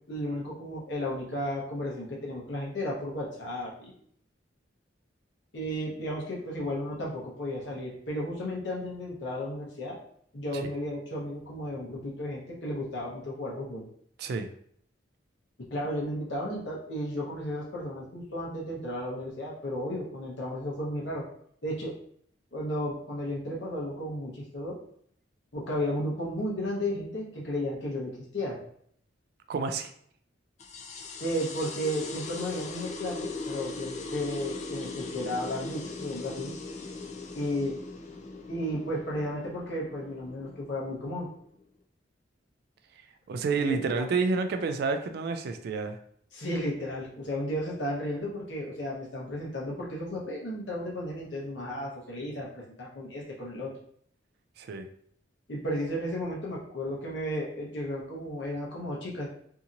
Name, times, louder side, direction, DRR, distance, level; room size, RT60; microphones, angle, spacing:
voice 1, 0.1-3.9 5.5-10.0 10.3-13.8 15.6-21.2 21.6-22.0 22.5-24.8 25.5-28.6 31.2-36.5 37.3-37.7 38.5-41.3 43.7-44.1 46.3-53.7 55.5-59.3, equal, 75° left, -4 dB, 0.9 m, -33 dB
voice 2, 29.5-29.9 43.3-46.0 54.6-54.9, right 4 dB, 60° right, 8 dB, 0.3 m, -29 dB
sound 1, 30.6-41.6, left 3 dB, 40° left, 0.4 m, -40 dB
2.8 x 2.7 x 2.5 m, 0.65 s
head